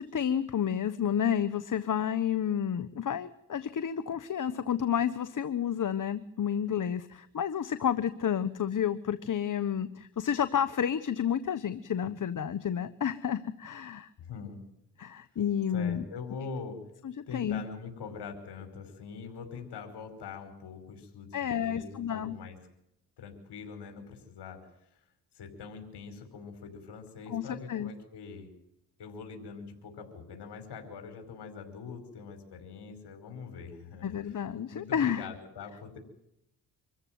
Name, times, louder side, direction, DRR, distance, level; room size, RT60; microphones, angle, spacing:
voice 1, 0.0-14.1 15.0-16.0 17.0-17.6 21.3-22.4 27.3-27.9 34.0-35.3, left 8 dB, 50° left, 13 dB, 1.2 m, -30 dB
voice 2, 14.2-14.6 15.7-16.8 17.3-22.6 23.2-25.0 25.3-28.5 29.0-34.4 34.7-36.0, left 5 dB, 75° left, 5 dB, 5.2 m, -43 dB
25.5 x 14.5 x 9.4 m, 0.78 s
supercardioid pair, 60°, 40 cm